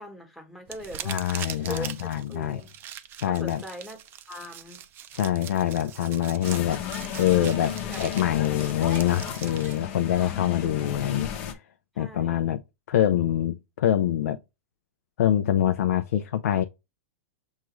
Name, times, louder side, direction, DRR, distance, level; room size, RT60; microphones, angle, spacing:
voice 1, 0.0-1.2 1.7-2.7 3.3-4.0 4.3-4.8 7.8-8.3 8.8-8.9 10.2-10.3 12.0-12.6, equal, ahead, 1.1 m, -41 dB
sound 1, 0.7-9.8, right 10 dB, 25° right, 0.4 m, -41 dB
voice 2, 1.1-2.6 3.2-3.6 5.1-6.8 7.1-11.3 12.0-12.6 12.9-14.4 15.2-16.6, left 11 dB, 80° left, 0.4 m, -25 dB
sound 2, 6.4-11.5, left 9 dB, 45° left, 0.8 m, -34 dB
6.4 x 2.4 x 3.0 m
hypercardioid pair, 145°, 8 cm